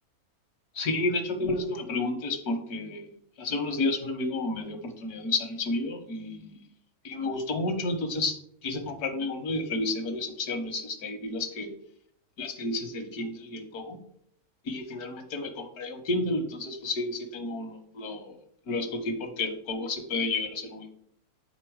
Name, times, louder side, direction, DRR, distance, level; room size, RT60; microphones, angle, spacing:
voice 1, 0.7-3.1 3.4-6.6 7.0-8.3 8.6-11.7 12.4-14.0 14.6-18.4 18.7-20.9, left 2 dB, 80° left, 7 dB, 1.6 m, -31 dB
8.1 x 4.1 x 4.6 m, 0.68 s
omnidirectional pair, 1.6 m